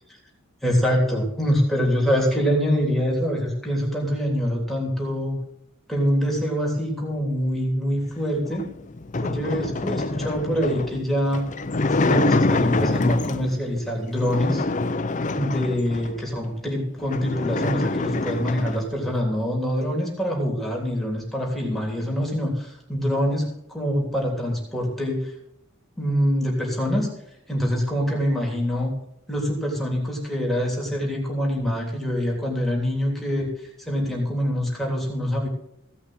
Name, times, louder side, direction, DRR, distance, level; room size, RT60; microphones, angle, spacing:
voice 1, 0.6-5.4 5.9-8.7 9.2-11.5 12.0-14.6 15.3-25.3 26.0-27.1 27.5-28.9 29.3-35.5, equal, ahead, -3 dB, 3.3 m, -25 dB
sound 1, 8.4-13.6 14.2-16.2 16.7-16.8 17.0-18.9, left 3 dB, 35° left, 0.6 m, -25 dB
17.0 x 5.9 x 7.8 m, 0.76 s
head